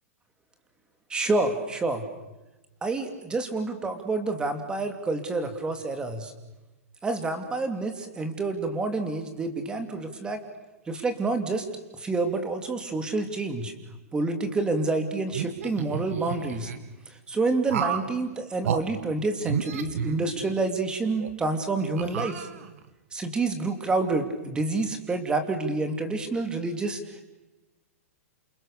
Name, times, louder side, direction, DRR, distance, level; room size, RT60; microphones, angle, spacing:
voice 1, 1.1-2.0 2.8-6.3 7.0-10.4 10.9-11.7 12.0-13.7 14.1-16.7 17.1-22.5 23.1-27.2, right 3 dB, 10° right, 6 dB, 2.8 m, -28 dB
sound 1, 15.3-16.8 17.7-18.1 18.6-18.8 19.4-20.7 21.2-21.3 22.0-22.9, right 8 dB, 70° right, 2.4 m, -31 dB
28.5 x 27.5 x 6.8 m, 1.1 s
hypercardioid pair, 150°, 8 cm